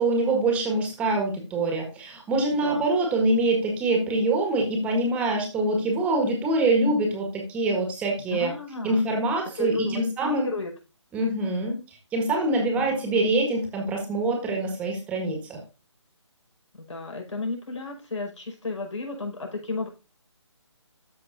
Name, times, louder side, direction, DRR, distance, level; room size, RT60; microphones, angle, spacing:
voice 1, 0.0-8.5 8.8-10.5 11.1-11.8 12.1-15.6, right 2 dB, 10° right, 2 dB, 1.6 m, -24 dB
voice 2, 8.3-9.0 9.5-10.7 12.7-13.2 16.8-19.9, left 3 dB, 75° left, 0 dB, 5.2 m, -33 dB
13.5 x 5.8 x 2.6 m, 0.30 s
figure-of-eight pair, 155°, 16 cm